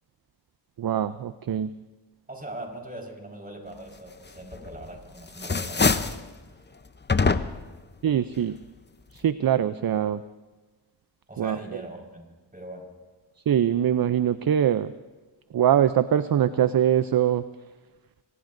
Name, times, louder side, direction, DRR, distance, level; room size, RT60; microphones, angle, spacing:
voice 1, 0.8-1.7 8.0-8.6 9.1-10.2 11.4-11.6 13.5-14.9 15.5-17.4, right 10 dB, 50° right, 13 dB, 0.5 m, -23 dB
voice 2, 2.3-6.2 11.3-12.9, right 1 dB, 20° right, 1 dB, 4.8 m, -41 dB
sound 1, 4.5-5.0 5.3-6.2 7.1-7.8, left 4 dB, 20° left, 0.7 m, -24 dB
24.0 x 19.5 x 2.6 m, 1.2 s
cardioid pair, 45°, 48 cm